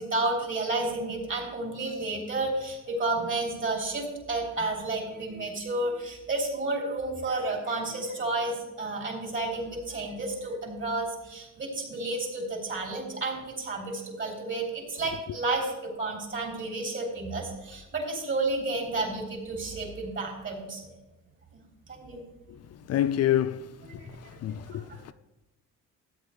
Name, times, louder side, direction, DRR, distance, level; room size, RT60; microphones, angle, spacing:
voice 1, 0.0-20.8 21.5-21.6 21.9-22.2 24.0-24.1 24.7-24.8, right 2 dB, 40° right, 3.4 m, -31 dB
voice 2, 22.5-25.1, left 11 dB, 55° left, 0.4 m, -29 dB
13.0 x 8.6 x 3.2 m
cardioid pair, 90°, 30 cm